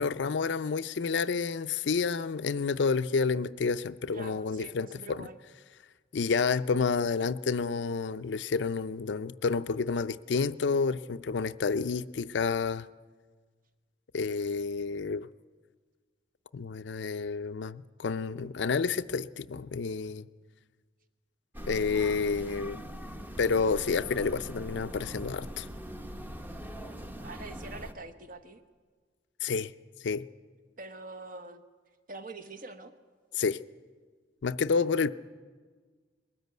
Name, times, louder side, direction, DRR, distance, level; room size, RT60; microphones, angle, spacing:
voice 1, 0.0-5.3 6.1-12.9 14.1-15.3 16.5-20.3 21.7-22.8 23.4-25.7 29.4-29.7 30.0-30.3 33.3-33.6 34.4-35.1, left 5 dB, 75° left, 0.5 m, -29 dB
voice 2, 4.1-5.4 27.2-28.6 30.8-31.6 32.1-32.9, right 3 dB, 50° right, 1.1 m, -44 dB
sound 1, 21.5-27.9, equal, 10° right, 0.8 m, -41 dB
21.0 x 13.5 x 9.2 m
head